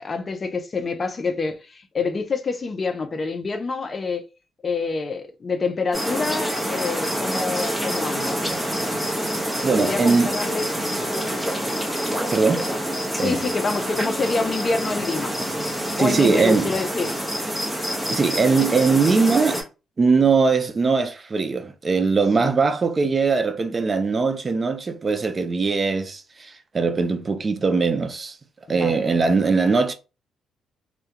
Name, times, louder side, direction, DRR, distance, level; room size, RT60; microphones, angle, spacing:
voice 1, 0.0-4.2 4.6-8.5 9.8-10.7 13.1-15.4 16.0-17.1 22.4-22.5 28.7-29.0, left 4 dB, 35° left, 0.4 m, -27 dB
sound 1, 5.9-19.6, equal, ahead, 0.8 m, -27 dB
voice 2, 9.1-10.3 12.3-13.4 16.0-16.7 18.1-19.6 20.0-28.4 28.7-29.9, right 4 dB, 35° right, 0.4 m, -21 dB
2.2 x 2.1 x 2.8 m
cardioid pair, 90°, 0 cm